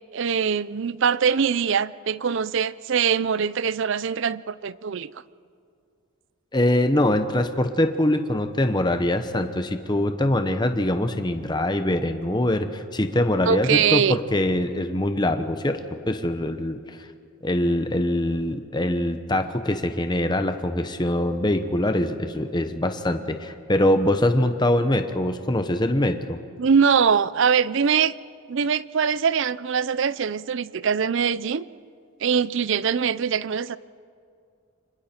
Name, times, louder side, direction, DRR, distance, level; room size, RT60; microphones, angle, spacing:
voice 1, 0.1-5.1 13.5-14.2 26.6-28.1 28.5-31.7 32.2-33.8, right 6 dB, 55° right, 18 dB, 0.5 m, -22 dB
voice 2, 6.5-15.8 16.1-17.0 17.4-26.4, left 1 dB, 20° left, 7 dB, 0.9 m, -23 dB
29.5 x 25.5 x 4.4 m, 2.3 s
head